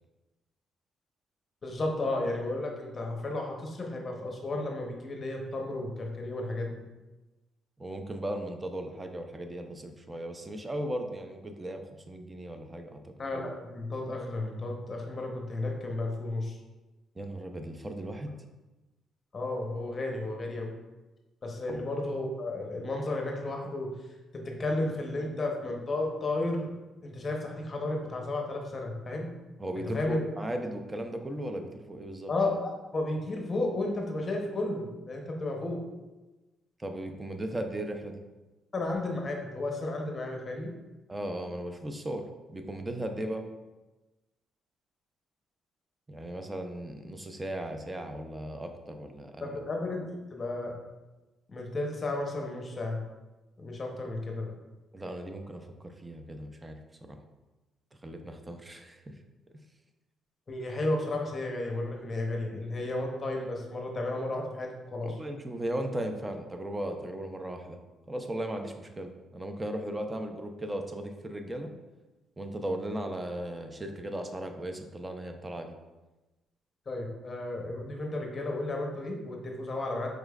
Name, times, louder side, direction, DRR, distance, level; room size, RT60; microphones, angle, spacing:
voice 1, 1.6-6.8 13.2-16.5 19.3-20.7 21.4-23.9 24.3-26.7 27.0-29.3 29.9-30.2 32.3-35.8 38.7-40.7 49.4-50.7 51.5-53.0 53.6-54.5 60.5-65.1 76.9-80.1, left 2 dB, 35° left, 1 dB, 0.8 m, -33 dB
voice 2, 7.8-11.8 12.1-13.1 17.2-18.4 21.7-21.8 29.6-32.3 36.8-38.2 41.1-43.4 46.1-49.6 54.9-56.8 57.1-57.2 58.0-59.1 65.0-67.8 68.1-71.7 72.4-75.7, right 1 dB, 20° right, 5 dB, 0.4 m, -37 dB
4.8 x 3.0 x 2.3 m, 1.1 s
cardioid pair, 90°, 0 cm